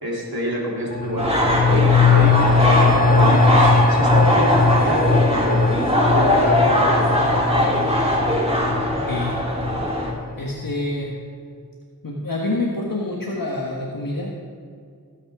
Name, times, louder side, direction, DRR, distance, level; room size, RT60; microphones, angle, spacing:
voice 1, 0.0-5.6 6.1-7.1, right 1 dB, 75° right, -5 dB, 3.3 m, -27 dB
sound 1, 0.9-10.3 10.6-10.7, left 4 dB, 25° left, 0.5 m, -20 dB
sound 2, 1.2-10.1, equal, 15° right, 2.7 m, -20 dB
voice 2, 8.9-9.4 10.4-11.2 12.0-14.3, left 2 dB, 65° left, -3 dB, 1.5 m, -27 dB
19.5 x 8.9 x 3.7 m, 2.2 s
wide cardioid pair, 40°, 37 cm